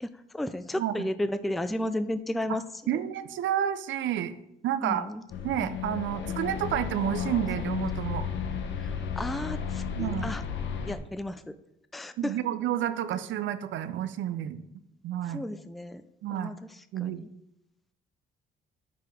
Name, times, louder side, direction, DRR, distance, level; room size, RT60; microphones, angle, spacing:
voice 1, 0.0-3.0 4.8-5.2 8.8-10.4 10.8-11.5 11.9-12.4 15.2-16.0 16.3-17.3, left 1 dB, ahead, 12 dB, 0.3 m, -34 dB
voice 2, 2.9-4.3 4.6-5.0 5.4-8.3 10.0-10.3 12.2-14.6 15.0-15.4 16.2-16.5 16.9-17.2, right 11 dB, 70° right, 12 dB, 0.5 m, -30 dB
sound 1, 5.3-11.0, left 7 dB, 70° left, 0.8 m, -33 dB
5.1 x 4.6 x 5.3 m, 0.81 s
cardioid pair, 90°, 20 cm